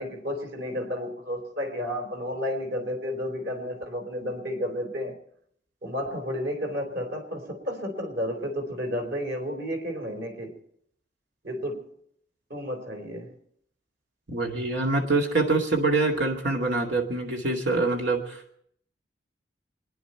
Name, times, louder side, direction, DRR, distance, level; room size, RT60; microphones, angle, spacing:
voice 1, 0.0-5.2 5.8-10.6 11.4-11.9 12.5-13.3, equal, 60° right, 3 dB, 4.3 m, -32 dB
voice 2, 14.3-18.6, right 3 dB, 80° right, 1 dB, 2.3 m, -25 dB
27.5 x 10.5 x 4.6 m, 0.68 s
head